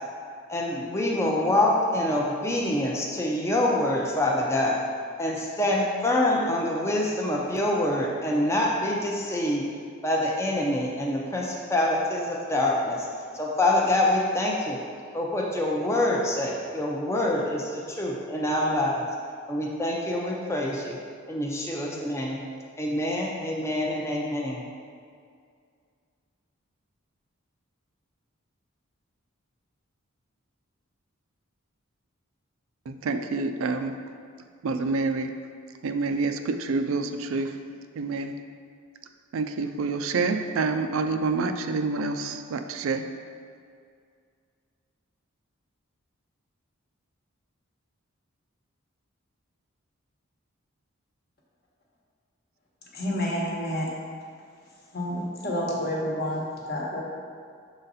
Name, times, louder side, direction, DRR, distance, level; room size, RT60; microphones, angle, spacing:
voice 1, 0.5-4.8 5.2-9.6 10.0-14.8 15.1-19.1 19.5-21.0 21.3-22.4 22.8-24.6, left 1 dB, 15° left, -2 dB, 0.5 m, -26 dB
voice 2, 32.9-34.0 34.6-35.3 35.8-37.6 38.0-38.3 39.3-43.1, right 3 dB, 70° right, 7 dB, 0.4 m, -27 dB
voice 3, 52.9-53.9 54.9-57.0, equal, 45° left, -3 dB, 1.1 m, -29 dB
6.2 x 4.0 x 4.0 m, 2.2 s
head